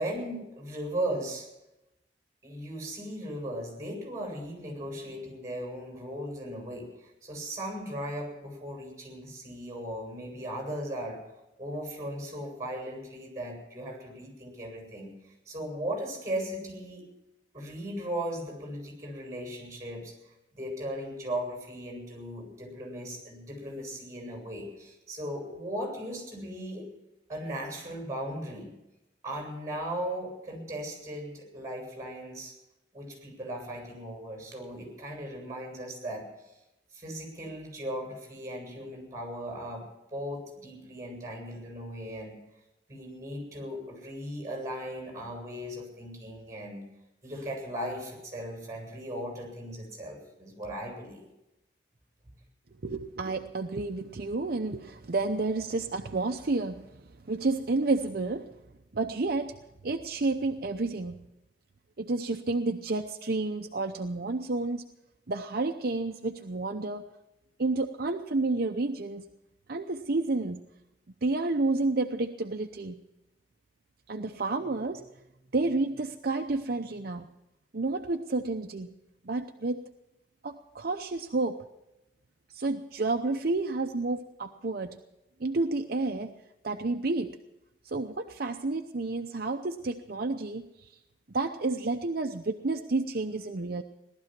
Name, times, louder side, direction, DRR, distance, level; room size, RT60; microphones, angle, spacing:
voice 1, 0.0-1.5 2.4-11.2 11.6-17.0 17.5-20.2 20.5-26.9 27.3-28.7 29.2-32.5 32.9-36.3 36.9-39.9 40.1-42.4 42.9-46.9 47.2-51.2 52.3-52.4, right 1 dB, 20° right, 2 dB, 7.6 m, -37 dB
voice 2, 52.8-58.5 58.9-59.6 59.8-61.2 62.0-64.8 65.3-67.0 67.6-69.3 69.7-70.6 71.2-73.0 74.1-75.0 75.5-77.3 77.7-78.9 79.2-79.8 80.4-81.6 82.5-85.0 85.4-86.3 86.6-87.4 87.8-91.0 91.3-93.8, right 3 dB, 60° right, 5 dB, 0.7 m, -30 dB
18.5 x 12.5 x 6.0 m, 0.93 s
head